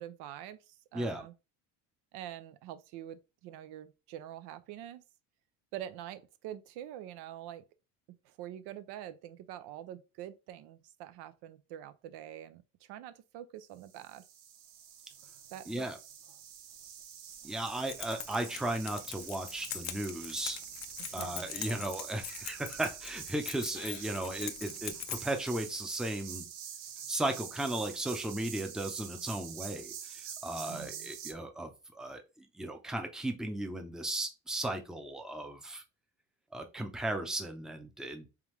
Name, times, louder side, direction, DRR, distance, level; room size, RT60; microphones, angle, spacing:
voice 1, 0.0-1.3 2.1-5.0 5.7-7.6 8.2-14.2 15.5-15.9 21.0-21.8 30.7-31.1, right 12 dB, 65° right, 0.6 m, -45 dB
voice 2, 0.9-1.3 15.7-16.0 17.4-20.6 21.1-26.4 27.1-35.8 36.5-38.3, right 1 dB, ahead, 0.6 m, -36 dB
sound 1, 13.8-31.3, right 8 dB, 85° right, 0.9 m, -46 dB
Keys jangling, 17.6-25.5, left 10 dB, 40° left, 0.5 m, -43 dB
3.5 x 3.5 x 3.1 m
supercardioid pair, 100°, 42 cm